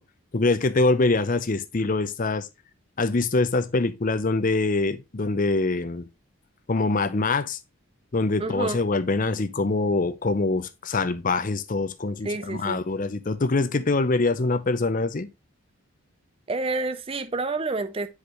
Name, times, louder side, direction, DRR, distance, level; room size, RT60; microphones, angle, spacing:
voice 1, 0.3-2.5 3.0-6.1 6.7-7.6 8.1-15.3, left 3 dB, 35° left, 0.6 m, -24 dB
voice 2, 8.4-8.8 12.2-12.8 16.5-18.1, right 3 dB, 25° right, 0.5 m, -28 dB
8.3 x 4.9 x 3.0 m
head